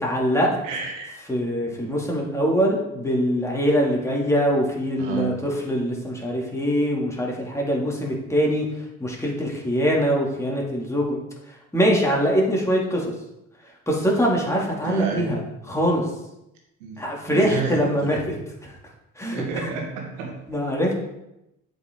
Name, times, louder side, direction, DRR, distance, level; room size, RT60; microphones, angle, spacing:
voice 1, 0.0-0.5 1.3-8.7 9.0-11.2 11.7-13.1 13.9-15.4 15.7-16.0 17.0-18.2 18.6-18.7 19.2-19.7 20.5-20.9, equal, 5° left, -3 dB, 2.7 m, -23 dB
voice 2, 0.6-1.2 1.6-1.8 5.0-5.3 14.8-15.3 16.8-17.0 17.3-18.2 19.3-20.3, right 5 dB, 80° right, 1 dB, 1.8 m, -30 dB
7.8 x 5.6 x 3.9 m, 0.88 s
hypercardioid pair, 55°, 38 cm